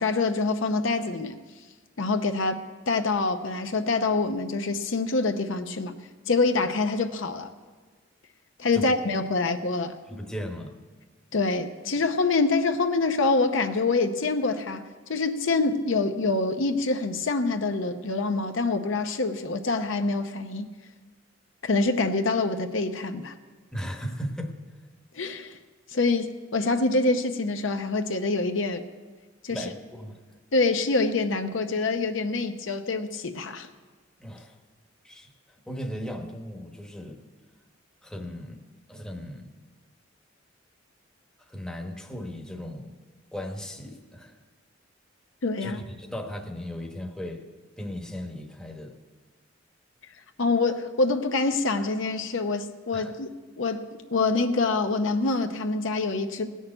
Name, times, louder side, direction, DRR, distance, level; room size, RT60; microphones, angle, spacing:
voice 1, 0.0-1.4 2.0-2.6 2.9-5.9 6.3-7.5 8.6-10.0 11.3-14.8 15.1-20.7 21.6-23.3 25.1-25.6 25.9-28.8 29.4-29.6 30.5-33.7 45.4-45.8 50.4-53.3 53.6-56.5, left 3 dB, 70° left, 6 dB, 0.8 m, -25 dB
voice 2, 10.1-10.7 23.7-24.6 29.5-30.2 34.2-34.5 35.0-35.3 35.7-37.2 38.0-38.6 38.9-39.5 41.5-42.9 43.3-44.3 45.6-47.5 47.8-48.9 52.9-53.2, equal, 5° left, 2 dB, 1.1 m, -36 dB
17.0 x 6.5 x 8.9 m, 1.4 s
head